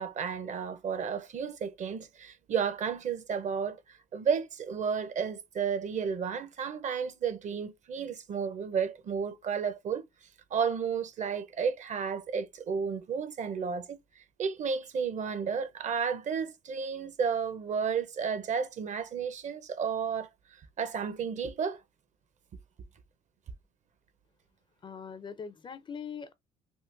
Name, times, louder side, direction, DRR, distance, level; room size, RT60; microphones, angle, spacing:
voice 1, 0.0-3.8 4.1-10.0 10.5-14.0 14.4-20.3 20.8-21.8, right 6 dB, 45° right, 0.6 m, -32 dB
voice 2, 24.8-26.3, left 6 dB, 30° left, 0.4 m, -41 dB
3.6 x 2.5 x 2.5 m
cardioid pair, 110°, 17 cm